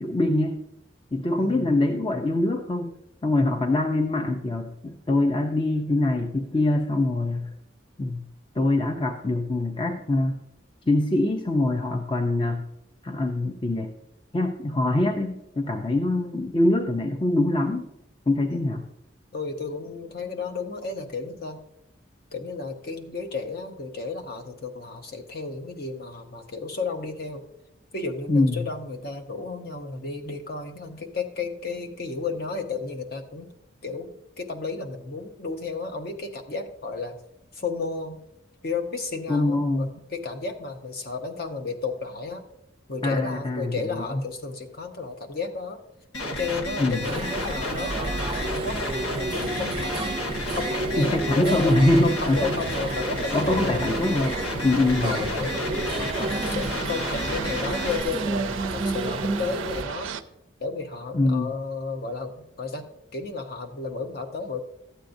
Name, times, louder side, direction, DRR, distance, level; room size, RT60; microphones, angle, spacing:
voice 1, 0.0-0.6 1.1-2.9 3.2-7.5 8.0-8.2 8.6-10.4 10.9-12.6 13.0-13.9 14.3-17.9 18.3-18.9 28.3-28.7 39.3-39.9 43.0-44.2 46.8-47.0 51.0-52.5 53.3-55.4 61.1-61.5, left 2 dB, 25° left, 4 dB, 0.5 m, -24 dB
voice 2, 1.4-1.8 18.5-18.8 19.3-21.6 22.3-27.4 27.9-33.5 33.8-34.1 34.4-37.2 37.5-38.2 38.6-42.4 42.9-45.8 46.4-50.2 50.5-53.9 55.0-60.1 60.6-62.9 63.1-64.6, left 4 dB, 50° left, 6 dB, 0.8 m, -33 dB
sound 1, 46.1-58.0, left 1 dB, 90° left, 1.2 m, -31 dB
sound 2, 47.0-59.8, right 2 dB, 25° right, 0.5 m, -31 dB
sound 3, 51.9-60.2, right 7 dB, 80° right, 0.4 m, -37 dB
12.5 x 8.2 x 2.6 m, 0.82 s
head